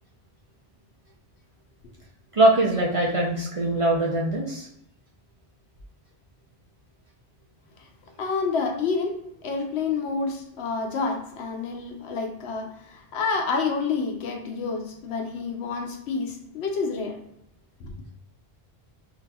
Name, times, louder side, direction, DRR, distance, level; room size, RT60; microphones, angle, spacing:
voice 1, 2.3-4.7, right 1 dB, 40° right, -4 dB, 0.5 m, -22 dB
voice 2, 8.2-17.2 17.8-17.9, left 4 dB, 80° left, 4 dB, 0.9 m, -29 dB
4.0 x 2.7 x 2.2 m, 0.77 s
omnidirectional pair, 1.1 m